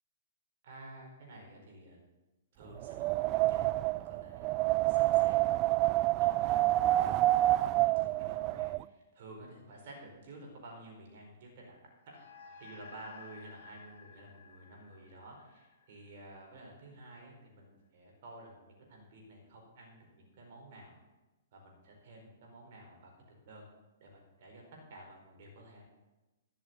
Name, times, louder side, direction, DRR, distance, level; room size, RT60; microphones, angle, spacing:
voice 1, 0.6-2.0 2.5-5.4 6.2-11.8 12.1-12.2 12.6-20.9 21.5-23.1 23.5-23.6 24.0-24.6 24.9-25.8, right 1 dB, 55° right, 1 dB, 4.5 m, -52 dB
Wind, 2.8-8.8, right 16 dB, 35° right, 0.4 m, -28 dB
sound 1, 12.0-16.7, left 5 dB, 50° left, 1.7 m, -55 dB
13.0 x 6.3 x 8.2 m, 1.1 s
figure-of-eight pair, 115°, 0 cm